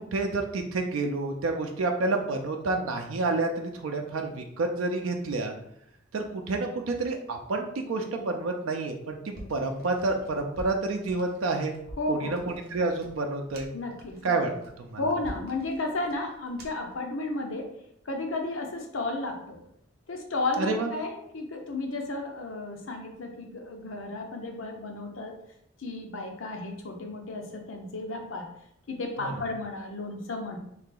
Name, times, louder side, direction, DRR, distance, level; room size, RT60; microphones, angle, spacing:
voice 1, 0.0-5.5 6.1-11.7 12.1-13.7 14.2-14.5 14.8-15.0 20.6-20.9 29.2-29.3, right 3 dB, 90° right, 3 dB, 0.4 m, -29 dB
sound 1, 9.3-17.0, right 1 dB, 50° right, 0.8 m, -47 dB
voice 2, 12.0-12.3 13.7-14.2 15.0-17.7 18.0-19.6 20.1-25.3 25.8-28.5 28.9-30.6, left 2 dB, 80° left, 3 dB, 0.7 m, -33 dB
3.2 x 2.8 x 3.8 m, 0.75 s
head